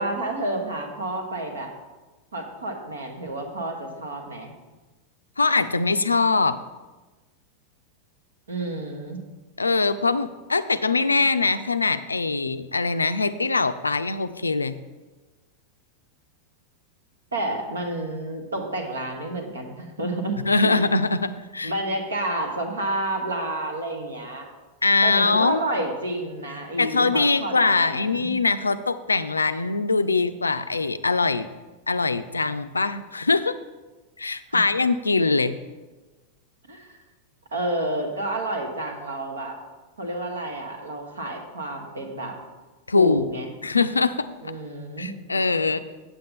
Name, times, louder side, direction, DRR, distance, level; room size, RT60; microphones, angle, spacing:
voice 1, 0.0-1.7 2.3-4.5 8.5-9.2 17.3-20.8 21.6-24.5 25.0-28.3 34.5-34.6 36.7-36.9 37.5-39.6 40.0-42.4 42.9-43.5 44.4-45.1, right 1 dB, 70° right, 4 dB, 1.2 m, -30 dB
voice 2, 5.4-6.6 9.6-14.8 20.4-21.7 24.8-25.6 26.8-31.5 31.9-33.5 34.2-35.6 42.9-43.3 43.6-44.5 45.0-45.8, left 3 dB, 80° left, 12 dB, 0.3 m, -22 dB
8.5 x 7.8 x 3.7 m, 1.2 s
figure-of-eight pair, 90°, 0 cm